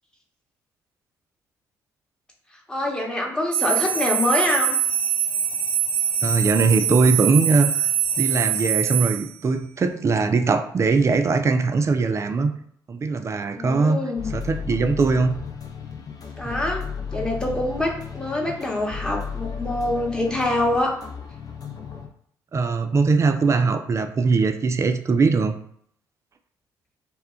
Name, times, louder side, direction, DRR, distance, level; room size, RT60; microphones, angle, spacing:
voice 1, 2.7-4.8 13.5-14.3 16.4-16.8 17.1-21.0, left 1 dB, 10° left, 0 dB, 0.9 m, -25 dB
sound 1, 3.5-9.3, right 9 dB, 65° right, 0.7 m, -23 dB
voice 2, 6.2-7.9 8.2-12.5 12.9-14.0 14.3-15.4 16.4-16.5 22.5-25.6, right 4 dB, 30° right, 8 dB, 0.4 m, -21 dB
sound 2, 14.2-22.1, left 6 dB, 40° left, 0.6 m, -34 dB
2.2 x 2.1 x 3.6 m, 0.66 s
hypercardioid pair, 45°, 9 cm